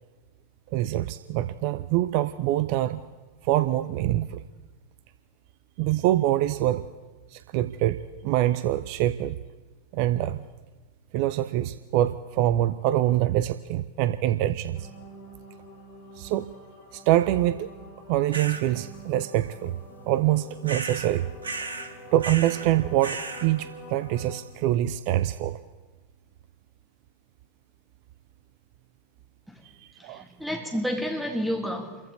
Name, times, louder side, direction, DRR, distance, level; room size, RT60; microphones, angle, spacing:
voice 1, 0.7-3.0 3.5-4.4 5.8-6.8 7.3-9.4 9.9-10.4 11.1-14.9 16.2-16.5 16.9-17.7 18.1-19.7 20.1-21.3 22.1-25.6 30.0-30.2, right 14 dB, 45° right, 0.5 m, -25 dB
sound 1, 14.7-24.4, left 1 dB, 45° left, 3.3 m, -46 dB
sound 2, 18.3-18.6 20.7-21.1 21.4-21.9 22.2-22.7 23.0-23.5, right 3 dB, 75° right, 1.5 m, -34 dB
voice 2, 30.0-32.0, equal, ahead, 2.2 m, -30 dB
30.0 x 15.0 x 3.2 m
figure-of-eight pair, 90°, 0 cm